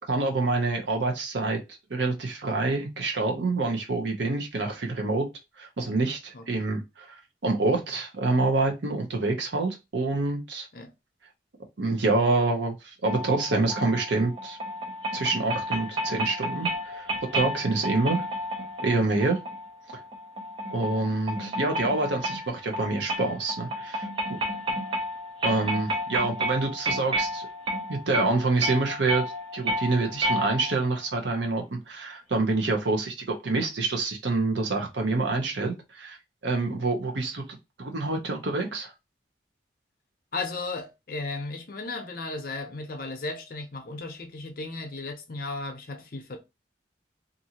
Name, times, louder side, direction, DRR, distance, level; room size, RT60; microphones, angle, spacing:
voice 1, 0.1-1.6 1.9-5.3 5.6-7.1 7.4-10.7 11.8-14.6 15.1-17.1 17.3-18.2 18.8-19.4 20.7-24.4 25.4-27.5 27.9-29.3 29.5-36.2 36.4-38.9, right 3 dB, 75° right, 0.8 m, -27 dB
sound 1, 13.1-30.9, equal, 30° right, 0.5 m, -32 dB
voice 2, 40.3-46.4, left 3 dB, 50° left, 0.6 m, -35 dB
2.6 x 2.5 x 2.8 m
head